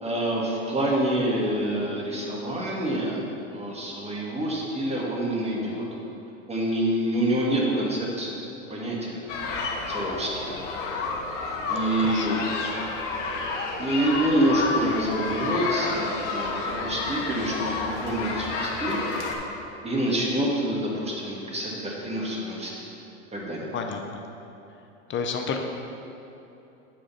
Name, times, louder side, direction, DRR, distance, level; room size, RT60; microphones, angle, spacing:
voice 1, 0.0-3.2 3.5-5.8 6.5-9.3 9.9-10.6 11.7-12.5 13.8-19.0 19.8-22.9 23.3-23.7, right 1 dB, 15° right, -3 dB, 2.1 m, -27 dB
sound 1, 9.3-19.3, left 3 dB, 75° left, 1.4 m, -30 dB
voice 2, 12.1-12.4 23.7-24.2 25.1-25.6, left 5 dB, 30° left, 4 dB, 0.7 m, -30 dB
8.8 x 4.9 x 5.8 m, 2.9 s
hypercardioid pair, 95°, 38 cm